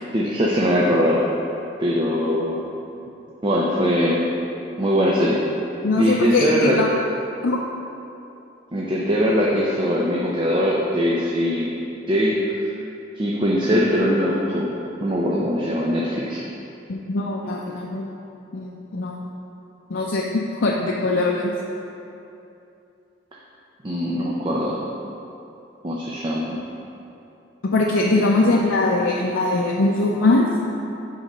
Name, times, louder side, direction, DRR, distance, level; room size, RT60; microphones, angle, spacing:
voice 1, 0.1-1.2 1.8-2.6 3.4-4.3 4.8-5.4 5.9-6.8 8.7-11.7 12.1-12.7 13.1-14.7 15.0-16.4 23.8-24.7 25.8-26.6 28.1-28.5, equal, 25° right, -4 dB, 0.6 m, -21 dB
voice 2, 5.8-6.9 7.4-7.6 16.9-18.1 18.5-19.2 19.9-21.5 27.7-30.5, left 2 dB, 80° left, -2 dB, 0.5 m, -21 dB
8.1 x 3.8 x 5.4 m, 2.8 s
head